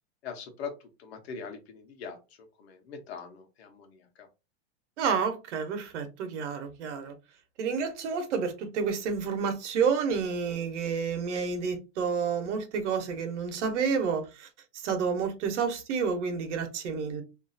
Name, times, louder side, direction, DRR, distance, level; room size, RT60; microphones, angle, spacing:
voice 1, 0.2-0.7 1.0-2.2 2.6-4.3, left 6 dB, 60° left, 0.9 m, -41 dB
voice 2, 5.0-7.1 7.6-17.2, right 6 dB, 80° right, 0.9 m, -30 dB
2.7 x 2.3 x 2.6 m
supercardioid pair, 180°, 35 cm